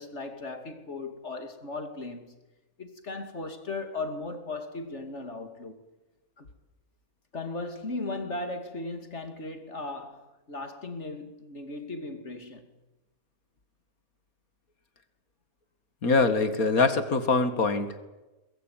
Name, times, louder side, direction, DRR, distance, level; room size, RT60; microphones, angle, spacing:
voice 1, 0.0-2.4 2.8-5.8 6.4-6.5 7.3-12.7, left 2 dB, 55° left, 2.9 m, -37 dB
voice 2, 16.0-18.0, left 3 dB, 85° left, 2.6 m, -24 dB
23.0 x 21.0 x 9.3 m
omnidirectional pair, 1.5 m